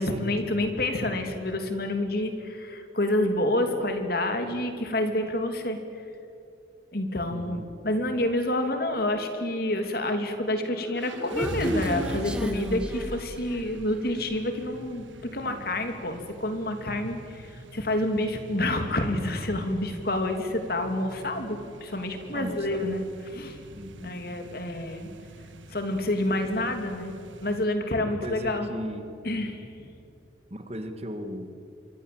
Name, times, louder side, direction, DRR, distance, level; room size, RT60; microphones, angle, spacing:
voice 1, 0.0-6.1 6.9-23.6 24.0-25.1 25.7-27.1 27.4-28.7 29.2-29.9, left 1 dB, 50° left, 6 dB, 2.9 m, -28 dB
voice 2, 7.3-7.6 15.3-15.7 22.3-22.9 23.7-24.2 26.3-26.4 28.2-29.1 30.5-31.7, equal, 30° right, 8 dB, 1.8 m, -37 dB
Human voice, 10.8-13.8, equal, 5° right, 1.6 m, -32 dB
sound 1, 11.0-27.6, right 2 dB, 80° right, 1.4 m, -45 dB
26.5 x 24.5 x 7.9 m, 2.7 s
head